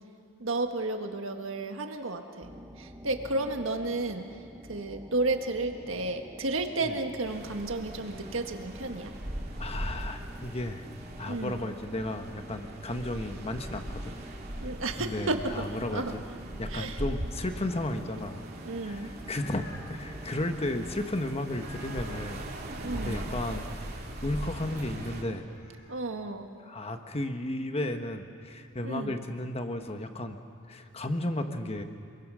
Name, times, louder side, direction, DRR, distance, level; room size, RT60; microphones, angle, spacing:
voice 1, 0.4-2.5 2.8-4.2 4.7-9.1 11.3-11.6 14.6-16.2 16.7-17.0 18.6-19.1 22.8-23.2 25.9-26.5 28.8-29.2, right 2 dB, 70° right, 5 dB, 1.7 m, -32 dB
sound 1, 2.4-21.1, equal, 10° right, 1.1 m, -47 dB
sound 2, 7.2-25.2, right 1 dB, 50° right, 2.6 m, -40 dB
voice 2, 9.6-10.8 11.2-14.2 15.0-16.2 16.6-18.4 18.8-22.4 22.9-25.4 26.6-31.8, left 1 dB, 30° left, 6 dB, 1.3 m, -34 dB
sound 3, 18.9-20.1 21.5-22.4 25.2-26.0, left 2 dB, 45° left, 4.5 m, -50 dB
27.5 x 22.0 x 6.3 m, 2.3 s
head